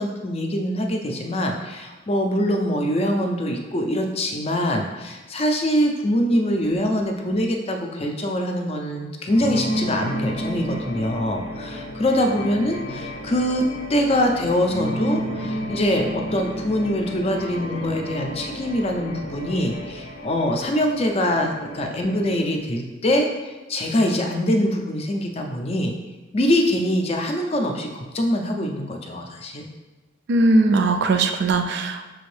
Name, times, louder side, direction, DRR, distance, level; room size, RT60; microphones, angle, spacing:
voice 1, 0.0-13.6 13.9-26.0 26.3-29.7, equal, 30° left, 3 dB, 0.4 m, -24 dB
sound 1, 9.3-22.6, equal, 90° left, 0.6 m, -31 dB
voice 2, 30.3-32.1, right 2 dB, 55° right, 6 dB, 0.3 m, -19 dB
6.1 x 2.5 x 3.2 m, 1.1 s
head